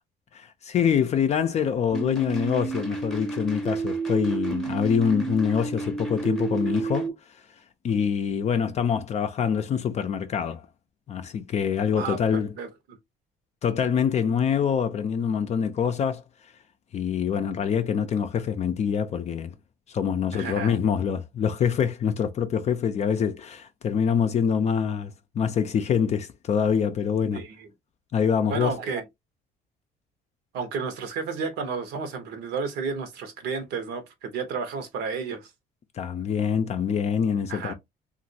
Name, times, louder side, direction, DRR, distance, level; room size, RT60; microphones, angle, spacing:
voice 1, 0.3-7.1 7.8-10.6 11.1-12.5 13.6-16.2 16.9-19.5 19.9-27.4 28.1-28.7 36.0-37.7, left 7 dB, 40° left, 0.4 m, -25 dB
sound 1, 1.9-7.1, right 4 dB, 5° left, 0.8 m, -30 dB
voice 2, 12.0-13.0 20.3-20.8 27.3-27.7 28.5-29.0 30.5-35.5 37.5-37.7, right 5 dB, 80° right, 1.0 m, -32 dB
2.9 x 2.5 x 2.7 m
cardioid pair, 110°, 17 cm